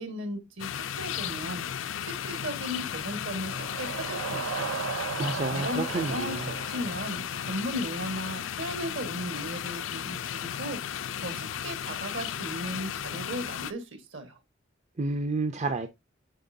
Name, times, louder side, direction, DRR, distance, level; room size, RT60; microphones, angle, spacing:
voice 1, 0.0-1.6 2.1-4.8 5.5-14.4, equal, 65° right, 1.5 m, -36 dB
sound 1, 0.6-13.7, left 9 dB, 70° left, 0.4 m, -35 dB
sound 2, 3.0-7.9, right 6 dB, 80° right, 0.5 m, -37 dB
voice 2, 5.2-6.5 15.0-15.9, right 3 dB, 35° right, 0.5 m, -30 dB
9.1 x 4.2 x 2.6 m
head